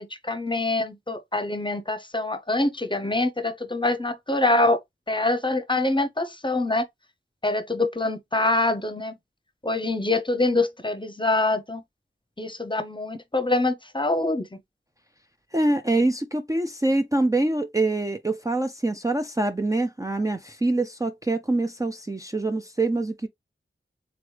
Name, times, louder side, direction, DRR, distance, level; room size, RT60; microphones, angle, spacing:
voice 1, 0.0-4.8 5.1-6.9 7.4-9.1 9.6-11.8 12.4-14.5, left 2 dB, 25° left, 0.7 m, -25 dB
voice 2, 15.5-23.3, right 2 dB, 15° right, 0.5 m, -25 dB
3.9 x 3.1 x 3.2 m
wide cardioid pair, 55°, 21 cm